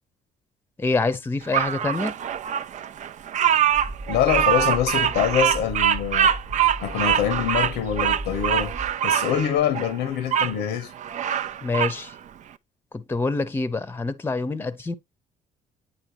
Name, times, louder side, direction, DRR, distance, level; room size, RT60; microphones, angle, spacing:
voice 1, 0.8-2.1 11.6-12.1 12.9-14.9, left 3 dB, 15° left, 0.8 m, -26 dB
Bird vocalization bird call bird song, 1.5-10.5 11.0-12.0, right 10 dB, 45° right, 0.5 m, -24 dB
sound 1, 3.7-8.9, right 2 dB, 15° right, 0.8 m, -36 dB
voice 2, 4.1-6.3 6.8-10.9, left 9 dB, 85° left, 1.0 m, -25 dB
9.1 x 4.4 x 3.0 m
cardioid pair, 110°, 17 cm